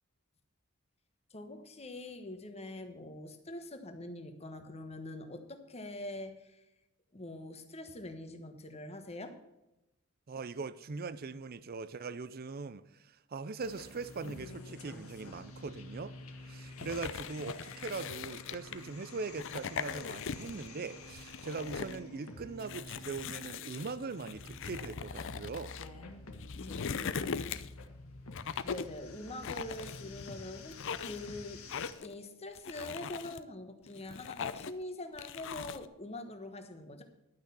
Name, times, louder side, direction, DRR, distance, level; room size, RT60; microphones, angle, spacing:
voice 1, 1.3-6.6 7.1-9.4 26.6-27.6 28.6-31.6 32.0-37.0, left 1 dB, 30° left, 1.3 m, -44 dB
voice 2, 10.3-25.7, right 4 dB, 45° right, 0.5 m, -41 dB
sound 1, 13.6-31.9, left 2 dB, 90° left, 1.7 m, -49 dB
sound 2, 16.8-18.9 19.3-20.7 21.0-22.0 22.6-25.9 26.3-27.8 28.3-29.0 29.4-30.3 30.7-31.3 31.7-32.1 32.6-33.4 33.9-34.8 35.2-35.9, left 6 dB, 60° left, 0.5 m, -40 dB
11.5 x 6.2 x 6.9 m
head